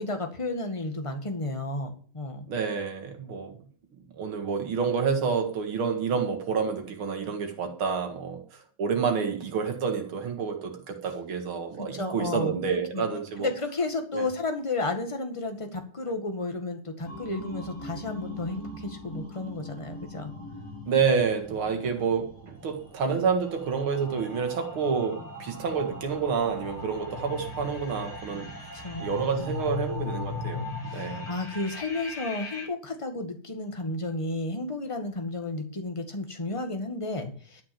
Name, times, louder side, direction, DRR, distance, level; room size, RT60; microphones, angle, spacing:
voice 1, 0.0-2.5 11.9-12.5 12.9-13.0 13.4-20.3 28.7-29.1 29.4-29.5 30.9-37.6, left 2 dB, 15° left, 1.7 m, -32 dB
voice 2, 2.5-3.6 4.2-8.4 8.8-13.5 14.1-14.3 20.9-28.5 29.0-30.6 30.9-31.3, right 6 dB, 75° right, 2.6 m, -28 dB
sound 1, 17.0-32.7, left 3 dB, 85° left, 7.8 m, -39 dB
12.5 x 6.1 x 7.2 m
omnidirectional pair, 2.3 m